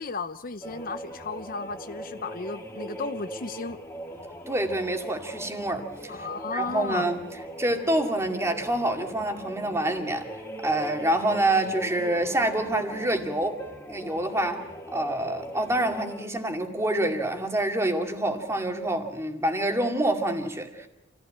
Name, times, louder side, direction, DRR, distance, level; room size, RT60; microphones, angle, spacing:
voice 1, 0.0-3.8 6.1-7.1, left 4 dB, 50° left, 0.8 m, -34 dB
sound 1, 0.6-16.3, equal, 15° left, 2.6 m, -40 dB
voice 2, 4.5-7.2 7.6-10.3 10.6-13.6 13.9-20.9, right 1 dB, 15° right, 2.3 m, -27 dB
28.0 x 15.5 x 8.8 m
head